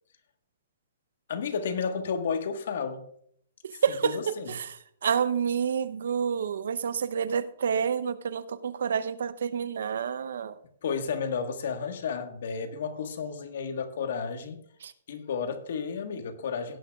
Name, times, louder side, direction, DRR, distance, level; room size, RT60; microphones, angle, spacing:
voice 1, 1.3-3.0 3.9-4.5 10.8-14.6 15.1-16.8, left 6 dB, 65° left, 1.5 m, -32 dB
voice 2, 3.8-4.7 5.0-10.5 14.8-14.9, right 7 dB, 70° right, 0.7 m, -28 dB
17.0 x 10.0 x 2.4 m
hypercardioid pair, 160°, 0 cm